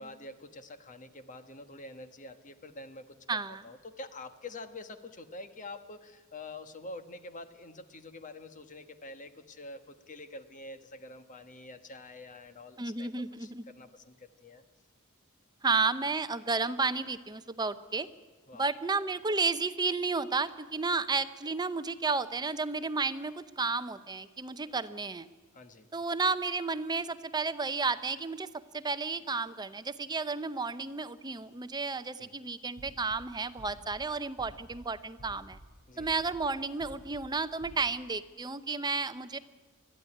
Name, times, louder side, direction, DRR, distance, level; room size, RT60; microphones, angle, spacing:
voice 1, 0.0-3.2 3.5-13.1 13.4-14.6 18.5-18.7 24.7-24.8 25.5-25.9 32.2-32.3 35.9-36.1, left 2 dB, 40° left, 9 dB, 1.3 m, -46 dB
voice 2, 3.3-3.6 12.8-13.6 15.6-18.1 18.6-25.3 25.9-35.6 36.0-39.4, right 4 dB, 20° right, 12 dB, 0.7 m, -32 dB
sound 1, 32.8-33.2 33.6-34.0 34.4-34.8 35.2-35.6 36.0-36.4 36.8-37.2 37.6-37.8, right 1 dB, 80° left, 6.0 m, -50 dB
21.5 x 13.5 x 9.9 m, 1.4 s
head